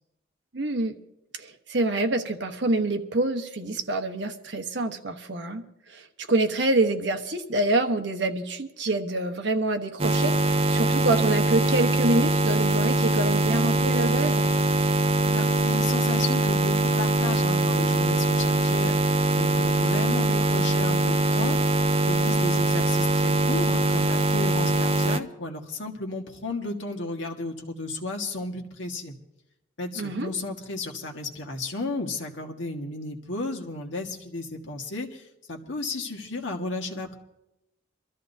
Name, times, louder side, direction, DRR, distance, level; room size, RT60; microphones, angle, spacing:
voice 1, 0.5-1.0 1.3-5.6 5.9-14.5 30.0-30.3, right 2 dB, 65° right, 5 dB, 1.1 m, -26 dB
sound 1, 10.0-25.2, right 2 dB, 30° right, 0.5 m, -22 dB
voice 2, 15.2-29.1 29.8-35.2 35.5-37.2, left 2 dB, 75° left, 2 dB, 1.6 m, -33 dB
24.5 x 13.5 x 2.7 m, 0.89 s
head